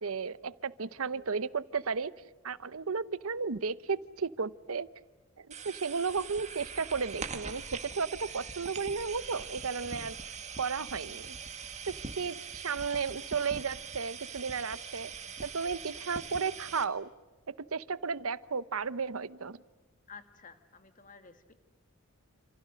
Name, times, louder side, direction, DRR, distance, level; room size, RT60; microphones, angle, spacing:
voice 1, 0.0-2.1 2.4-4.9 5.4-11.4 11.9-15.1 15.4-17.1 17.5-19.6, right 5 dB, 75° right, 16 dB, 0.8 m, -34 dB
sound 1, 5.5-16.8, right 5 dB, 30° right, 1.8 m, -42 dB
voice 2, 10.9-11.2 20.1-21.5, left 5 dB, 35° left, 8 dB, 2.0 m, -52 dB
28.5 x 27.5 x 6.4 m, 1.3 s
head